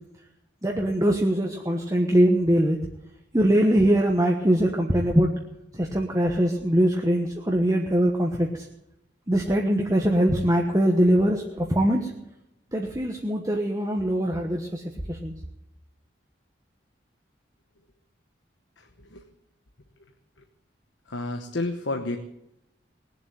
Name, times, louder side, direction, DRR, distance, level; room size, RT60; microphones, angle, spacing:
voice 1, 0.6-2.8 3.3-5.3 5.7-8.7 9.3-12.1 12.7-14.8 15.1-15.3, right 1 dB, 20° right, 1 dB, 1.1 m, -22 dB
voice 2, 18.8-19.2 21.1-22.2, left 2 dB, 80° left, 5 dB, 1.1 m, -31 dB
20.0 x 7.5 x 9.2 m, 0.89 s
head